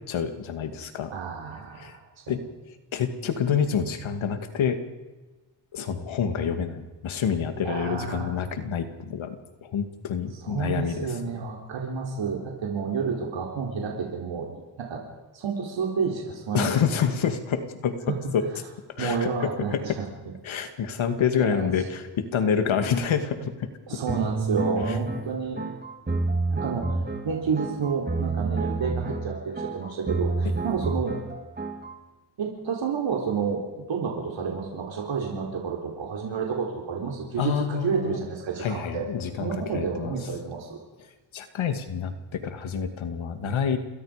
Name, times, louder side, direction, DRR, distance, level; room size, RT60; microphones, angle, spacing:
voice 1, 0.1-1.1 1.7-2.0 2.3-2.4 2.9-4.8 5.7-11.2 16.5-18.4 19.0-20.0 20.4-23.7 24.9-25.0 37.4-38.2 38.6-40.1 41.3-43.8, left 7 dB, 75° left, 8 dB, 2.4 m, -27 dB
voice 2, 1.1-2.0 2.3-2.4 7.6-8.3 10.4-14.5 14.8-15.0 15.3-16.7 18.1-18.2 19.0-20.0 21.4-21.7 23.9-25.6 26.5-31.1 32.4-33.6 33.9-39.1 39.4-40.8, right 5 dB, 65° right, -1 dB, 4.1 m, -30 dB
sound 1, 24.1-32.0, right 3 dB, 20° right, 2.7 m, -29 dB
28.0 x 21.5 x 5.2 m, 1.2 s
cardioid pair, 90°, 48 cm